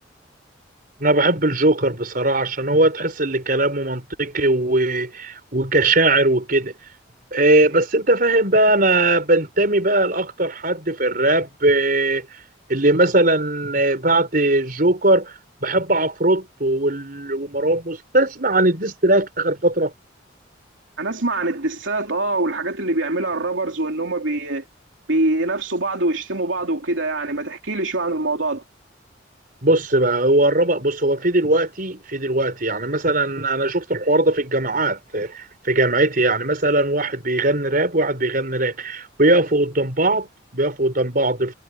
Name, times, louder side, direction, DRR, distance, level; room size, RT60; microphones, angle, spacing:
voice 1, 1.0-6.7 7.3-12.3 12.7-19.9 29.6-41.5, right 2 dB, 50° right, 5.3 m, -20 dB
voice 2, 21.0-24.7 25.1-28.6, right 2 dB, 90° right, 2.9 m, -24 dB
head